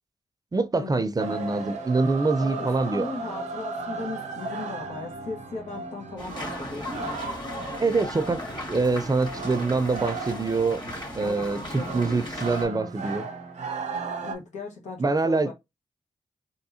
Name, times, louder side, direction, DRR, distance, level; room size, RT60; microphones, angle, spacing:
voice 1, 0.5-3.1 7.8-10.8 11.1-13.3 15.0-15.5, right 3 dB, 30° right, 0.5 m, -25 dB
sound 1, 1.2-14.3, right 4 dB, 90° right, 0.7 m, -36 dB
voice 2, 2.4-7.2 11.1-12.3 14.2-15.5, left 3 dB, 80° left, 1.3 m, -37 dB
sound 2, 6.2-12.6, left 1 dB, 40° left, 2.1 m, -37 dB
3.6 x 2.6 x 2.8 m
cardioid pair, 45°, 12 cm